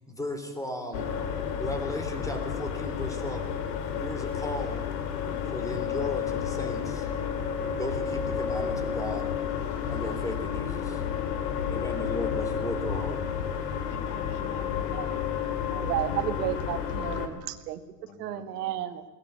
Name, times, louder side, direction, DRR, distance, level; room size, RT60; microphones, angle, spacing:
voice 1, 0.1-1.1 1.6-3.5 4.0-4.8 5.5-7.1 7.7-9.3 9.9-11.0 11.7-13.2, left 1 dB, 5° left, 7 dB, 3.8 m, -35 dB
sound 1, 0.9-17.3, left 7 dB, 75° left, 3.5 m, -31 dB
voice 2, 11.6-12.1 13.9-14.9 18.1-18.8, left 5 dB, 35° left, 6 dB, 3.3 m, -47 dB
voice 3, 15.7-17.8 18.2-19.0, right 13 dB, 75° right, 9 dB, 2.0 m, -32 dB
21.0 x 20.0 x 8.3 m, 1.2 s
supercardioid pair, 135°, 48 cm